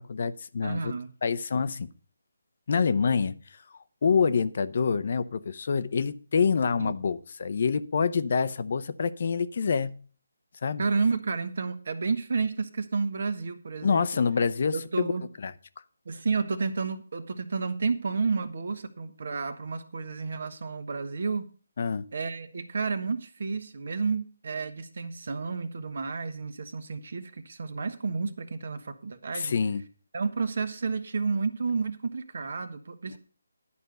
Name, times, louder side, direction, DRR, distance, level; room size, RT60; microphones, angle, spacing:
voice 1, 0.0-0.9 1.2-1.9 2.7-3.6 4.0-10.0 10.6-10.8 13.8-15.1 15.4-15.5 21.8-22.1 29.3-29.8, left 5 dB, 50° left, 0.7 m, -26 dB
voice 2, 0.6-1.1 6.8-6.9 10.8-14.2 14.7-15.3 16.0-21.5 22.1-29.5 30.1-33.2, right 4 dB, 60° right, 1.4 m, -31 dB
11.0 x 5.3 x 7.8 m
figure-of-eight pair, 160°, 0 cm